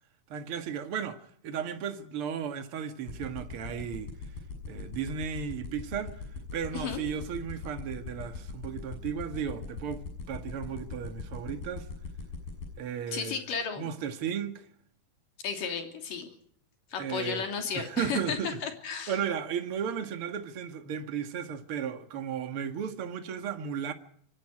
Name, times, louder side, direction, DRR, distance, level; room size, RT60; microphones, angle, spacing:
voice 1, 0.3-4.2 4.7-6.2 6.5-11.9 12.8-13.4 13.8-14.7 17.0-17.4 17.7-18.6 19.1-23.9, right 8 dB, 45° right, 2.1 m, -35 dB
sound 1, 3.1-12.6, left 4 dB, 80° left, 8.5 m, -38 dB
voice 2, 13.1-13.9 15.4-16.3 16.9-19.1, left 6 dB, 65° left, 4.7 m, -33 dB
25.5 x 22.0 x 5.0 m
omnidirectional pair, 4.3 m